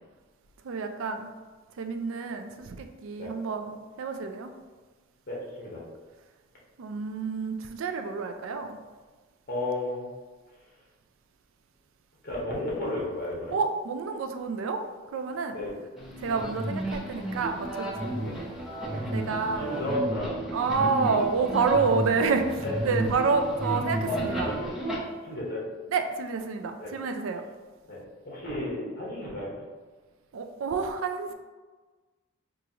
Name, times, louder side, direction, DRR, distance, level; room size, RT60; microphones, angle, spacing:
voice 1, 0.6-1.3 1.8-4.5 6.8-8.8 13.5-14.8 15.1-15.6 16.2-18.2 19.1-19.7 20.5-24.5 25.9-27.4 30.3-31.3, right 4 dB, 80° right, 6 dB, 0.4 m, -29 dB
voice 2, 5.3-5.8 9.5-10.1 12.2-13.6 15.5-15.7 16.3-16.4 18.2-18.4 18.9-20.4 22.6-22.7 24.0-24.7 25.2-25.6 26.8-26.9 27.9-28.0 28.2-29.5, left 1 dB, 50° left, -5 dB, 1.2 m, -33 dB
sound 1, 16.0-24.9, right 1 dB, ahead, 0.8 m, -33 dB
4.8 x 2.5 x 2.9 m, 1.4 s
head